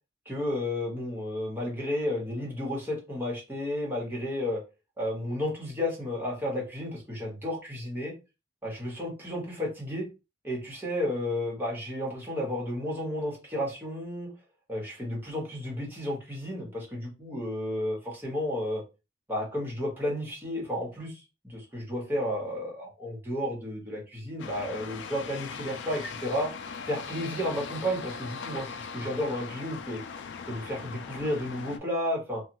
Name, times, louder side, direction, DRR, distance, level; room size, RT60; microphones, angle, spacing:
voice 1, 0.2-4.6 5.0-8.1 8.6-10.1 10.4-14.3 14.7-18.8 19.3-26.5 26.8-28.7 28.9-30.0 30.5-32.4, left 1 dB, 10° right, -3 dB, 1.2 m, -32 dB
sound 1, 24.4-31.8, left 5 dB, 70° left, 0.4 m, -40 dB
3.2 x 2.2 x 2.9 m, 0.28 s
head